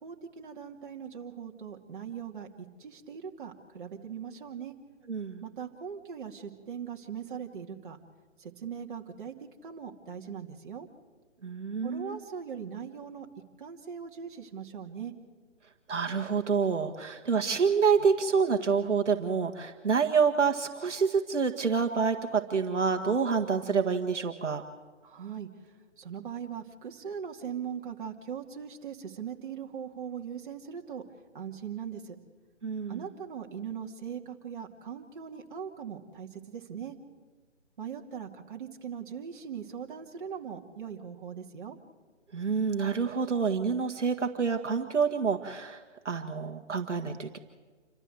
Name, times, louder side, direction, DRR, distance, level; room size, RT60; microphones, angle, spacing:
voice 1, 0.0-4.7 5.4-8.0 8.4-9.3 9.6-10.9 11.8-13.3 13.6-15.1 25.0-25.5 26.0-31.0 31.3-32.2 32.9-37.0 37.8-41.8, right 7 dB, 45° right, 1 dB, 2.5 m, -40 dB
voice 2, 5.1-5.4 11.4-12.2 15.9-24.6 32.6-33.0 42.3-47.4, right 5 dB, 75° right, 4 dB, 1.9 m, -27 dB
28.0 x 13.5 x 7.9 m, 1.4 s
figure-of-eight pair, 155°, 36 cm